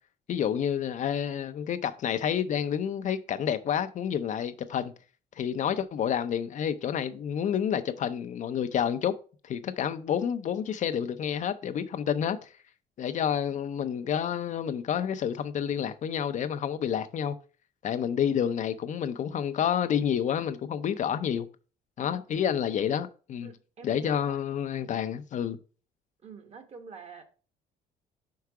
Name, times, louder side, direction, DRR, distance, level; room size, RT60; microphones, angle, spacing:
voice 1, 0.3-4.9 5.4-9.2 9.4-12.5 13.0-17.4 17.8-21.5 22.0-23.5 23.8-25.6, left 8 dB, 45° left, 0.5 m, -29 dB
voice 2, 23.4-24.4 26.2-27.2, right 5 dB, 40° right, 1.2 m, -47 dB
4.7 x 4.6 x 4.7 m
cardioid pair, 110°, 17 cm